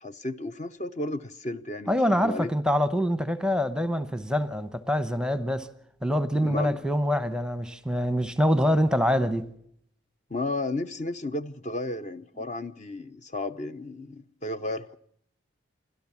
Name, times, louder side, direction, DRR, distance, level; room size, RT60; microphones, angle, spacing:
voice 1, 0.0-2.5 6.4-6.8 10.3-15.0, left 2 dB, 35° left, 0.7 m, -33 dB
voice 2, 1.9-5.7 6.0-9.5, equal, 5° right, 0.9 m, -25 dB
29.0 x 12.5 x 7.2 m
head